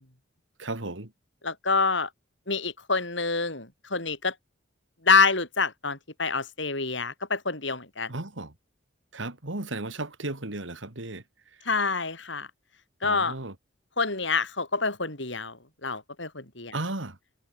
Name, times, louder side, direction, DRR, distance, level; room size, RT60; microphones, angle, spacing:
voice 1, 0.6-1.1 8.1-8.5 9.1-11.2 13.0-13.5 16.7-17.2, right 2 dB, 70° right, 2.6 m, -34 dB
voice 2, 1.4-2.1 2.5-4.3 5.0-8.1 11.7-12.5 13.0-13.4 14.0-16.8, left 4 dB, 65° left, 6.9 m, -27 dB
head